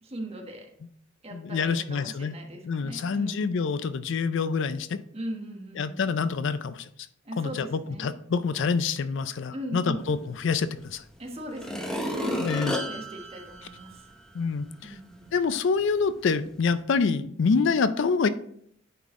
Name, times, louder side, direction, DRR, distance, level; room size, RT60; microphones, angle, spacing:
voice 1, 0.0-0.7 1.2-3.5 5.1-6.1 7.2-8.1 9.5-10.1 11.2-12.5 12.9-14.1 14.8-15.3, right 1 dB, 30° right, 2 dB, 1.2 m, -39 dB
voice 2, 1.3-2.4 2.6-5.0 5.8-6.9 7.4-11.0 12.4-12.8 14.3-15.0 15.3-18.3, left 5 dB, 65° left, 13 dB, 0.4 m, -26 dB
sound 1, 10.8-10.9 11.5-14.3 14.8-14.9, equal, 5° left, 0.7 m, -32 dB
9.3 x 4.0 x 3.6 m, 0.65 s
head